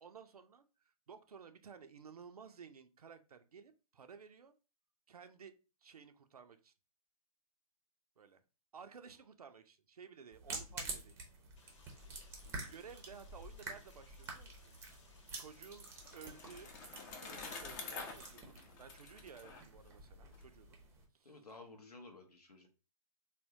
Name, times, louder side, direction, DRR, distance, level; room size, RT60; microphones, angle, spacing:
voice 1, 0.0-4.5 5.1-5.5 5.8-6.7 8.2-8.4 8.7-11.2 11.9-12.1 12.7-14.7 15.3-15.9 16.1-16.8 17.2-20.8 21.1-21.4, right 6 dB, 75° right, 8 dB, 0.5 m, -55 dB
sound 1, 10.3-21.0, right 3 dB, 15° right, 0.6 m, -49 dB
sound 2, 11.6-18.4, left 3 dB, 50° left, 0.9 m, -65 dB
voice 2, 12.4-12.8 21.2-22.7, left 3 dB, 85° left, 4 dB, 0.7 m, -55 dB
Bicycle, 15.3-20.4, left 4 dB, 30° left, 0.6 m, -49 dB
3.5 x 2.2 x 2.6 m, 0.33 s
figure-of-eight pair, 125°, 19 cm